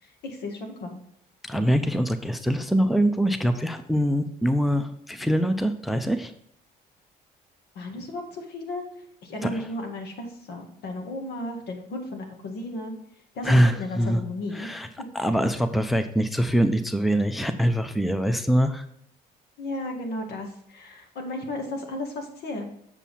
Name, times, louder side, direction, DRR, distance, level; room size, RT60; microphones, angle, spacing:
voice 1, 0.0-1.0 7.8-8.8 9.2-12.9 13.3-14.9 19.6-22.6, left 1 dB, 75° left, 2 dB, 1.9 m, -34 dB
voice 2, 1.4-6.3 9.4-9.7 13.4-14.2 14.5-14.9 15.1-18.9, equal, ahead, 9 dB, 0.5 m, -23 dB
7.3 x 5.4 x 4.2 m, 0.74 s
cardioid pair, 110°, 17 cm